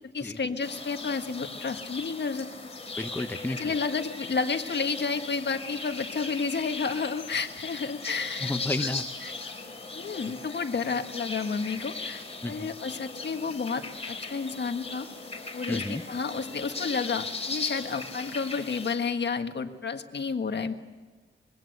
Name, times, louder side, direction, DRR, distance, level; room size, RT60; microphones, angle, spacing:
voice 1, 0.1-2.5 3.5-8.5 9.2-9.3 9.9-15.1 15.5-20.7, left 5 dB, 60° left, 7 dB, 1.6 m, -31 dB
sound 1, 0.6-19.0, left 3 dB, 30° left, 4.2 m, -38 dB
voice 2, 3.0-3.7 8.4-9.1 12.4-12.7 15.7-16.0, left 2 dB, 10° left, 7 dB, 0.8 m, -32 dB
25.5 x 22.0 x 8.0 m, 1.3 s
wide cardioid pair, 130°, 20 cm